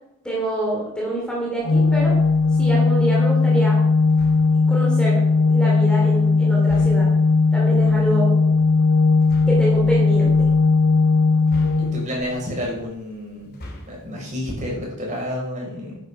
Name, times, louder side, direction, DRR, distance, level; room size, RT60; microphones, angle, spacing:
voice 1, 0.2-2.2 2.6-3.8 4.7-5.2 5.5-7.1 7.5-8.3 9.5-10.5, right 1 dB, 5° left, -4 dB, 2.9 m, -26 dB
Organ, 1.6-12.5, left 3 dB, 70° left, 1.3 m, -17 dB
sound 1, 4.1-4.7 6.6-7.3 9.2-9.7 11.5-12.3 13.4-14.1, left 1 dB, 45° left, 2.9 m, -39 dB
voice 2, 11.8-13.5 13.9-16.0, left 1 dB, 35° right, -3 dB, 5.9 m, -30 dB
12.0 x 10.0 x 4.9 m, 0.80 s
head